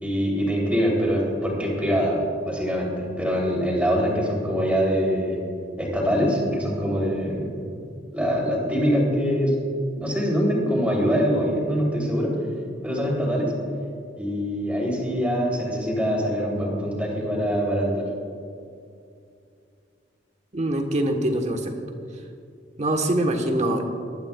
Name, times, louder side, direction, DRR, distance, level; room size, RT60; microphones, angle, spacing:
voice 1, 0.0-5.4 5.8-7.5 8.1-9.5 10.0-12.3 12.8-13.5 14.1-18.0, equal, 5° right, -3 dB, 3.1 m, -24 dB
voice 2, 20.5-21.7 22.8-23.9, right 1 dB, 40° right, 4 dB, 1.2 m, -23 dB
21.0 x 12.0 x 2.3 m, 2.4 s
head